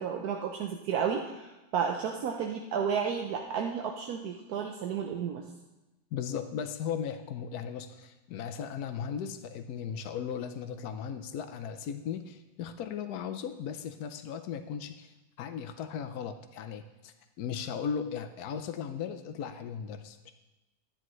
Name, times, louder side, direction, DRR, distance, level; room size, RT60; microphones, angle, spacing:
voice 1, 0.0-5.4, right 7 dB, 80° right, 2 dB, 1.3 m, -32 dB
voice 2, 6.1-20.3, left 7 dB, 80° left, 7 dB, 1.2 m, -37 dB
13.0 x 10.0 x 3.1 m, 1.0 s
omnidirectional pair, 1.6 m